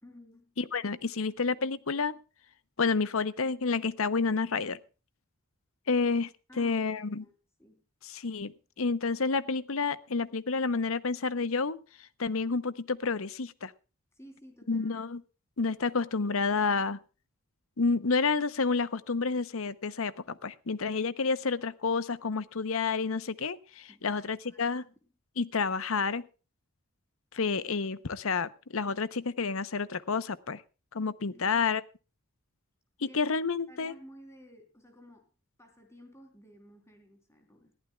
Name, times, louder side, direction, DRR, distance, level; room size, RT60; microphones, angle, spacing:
voice 1, 0.0-0.5 6.5-7.3 7.6-7.8 14.2-15.0 23.9-24.7 25.0-25.1 31.3-31.7 33.0-33.3 33.7-35.3 35.6-37.7, equal, 15° left, 5 dB, 3.5 m, -54 dB
voice 2, 0.6-2.1 2.8-4.8 5.9-6.3 6.6-7.2 8.0-13.7 14.7-15.2 15.6-17.0 17.8-24.8 25.4-26.2 27.3-30.6 30.9-31.8 33.0-33.9, left 4 dB, 65° left, 16 dB, 0.8 m, -30 dB
20.5 x 14.5 x 2.3 m, 0.33 s
head